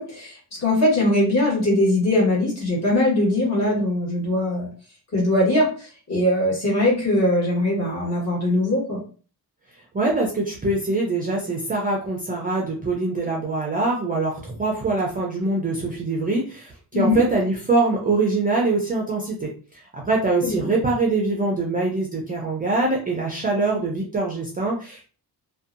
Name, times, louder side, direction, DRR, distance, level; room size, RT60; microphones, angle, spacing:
voice 1, 0.0-4.7 5.1-9.0 16.9-17.2 20.4-20.7, left 1 dB, 40° left, -5 dB, 1.3 m, -21 dB
voice 2, 9.9-25.1, right 3 dB, 25° right, -2 dB, 0.4 m, -23 dB
2.6 x 2.2 x 2.5 m, 0.39 s
wide cardioid pair, 175°, 39 cm